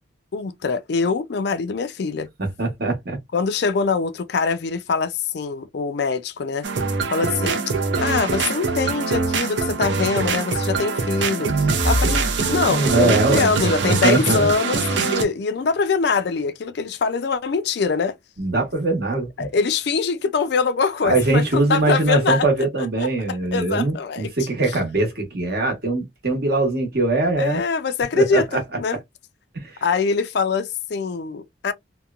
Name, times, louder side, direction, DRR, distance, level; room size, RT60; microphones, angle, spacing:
voice 1, 0.3-2.3 3.3-6.7 7.1-7.6 8.0-18.1 19.1-22.5 22.8-24.3 27.4-29.0 29.8-31.7, left 5 dB, 60° left, 0.4 m, -23 dB
voice 2, 2.6-3.2 12.7-14.5 18.4-19.5 21.0-27.6 28.1-28.4 29.5-29.7, right 2 dB, 55° right, 1.1 m, -21 dB
sound 1, 6.6-15.2, right 4 dB, 70° right, 0.6 m, -23 dB
2.8 x 2.1 x 2.4 m
head